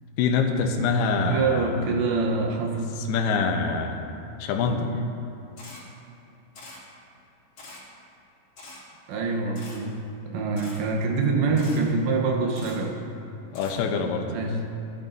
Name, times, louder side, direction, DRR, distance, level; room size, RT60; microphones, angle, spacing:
voice 1, 0.2-1.7 3.1-4.0 4.4-5.0 13.5-14.3, left 4 dB, 80° left, 2 dB, 2.3 m, -25 dB
voice 2, 1.3-2.9 9.1-13.0 14.3-14.6, right 4 dB, 80° right, 1 dB, 3.2 m, -25 dB
Camera, 5.6-5.8 6.5-6.8 7.6-7.8 8.6-8.8 9.5-9.8 10.6-10.8 11.6-11.8 12.5-12.8 13.5-13.8, left 2 dB, 40° left, 2.8 m, -44 dB
15.5 x 11.0 x 2.6 m, 2.9 s
omnidirectional pair, 5.3 m